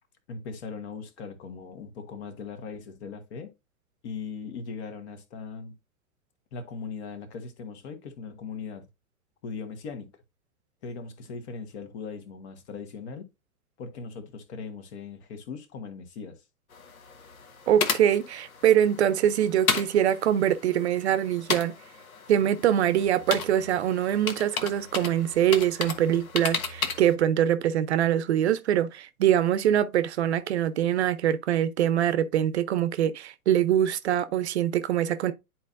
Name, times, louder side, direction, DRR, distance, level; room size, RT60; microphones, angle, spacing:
voice 1, 0.3-3.5 4.0-5.8 6.5-8.9 9.4-10.1 10.8-13.2 13.8-16.4, left 5 dB, 45° left, 1.6 m, -39 dB
sound 1, 16.7-27.1, left 5 dB, 70° left, 1.3 m, -34 dB
voice 2, 17.7-21.7 22.3-35.3, right 10 dB, 50° right, 0.7 m, -24 dB
10.5 x 4.4 x 2.5 m
figure-of-eight pair, 105°, 44 cm